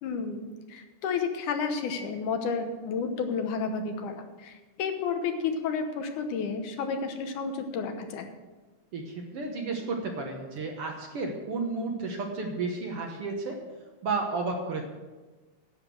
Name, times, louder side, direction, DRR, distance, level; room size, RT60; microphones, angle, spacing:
voice 1, 0.0-8.3, left 5 dB, 80° left, 6 dB, 2.5 m, -31 dB
voice 2, 8.9-13.6 14.0-14.8, right 3 dB, 60° right, 2 dB, 1.8 m, -32 dB
10.5 x 8.2 x 6.3 m, 1.2 s
omnidirectional pair, 3.6 m